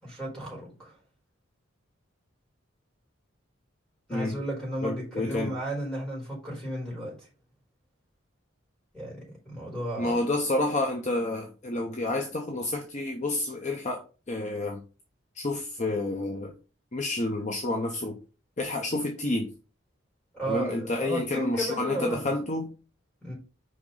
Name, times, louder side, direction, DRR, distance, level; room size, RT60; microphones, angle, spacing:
voice 1, 0.0-0.9 4.1-7.1 8.9-10.2 20.3-22.3 23.2-23.3, right 1 dB, 5° left, 4.3 m, -33 dB
voice 2, 4.8-5.5 10.0-14.8 15.3-16.5 16.9-18.2 18.6-19.5 20.5-22.7, left 2 dB, 35° left, 0.8 m, -29 dB
6.1 x 5.2 x 4.0 m
head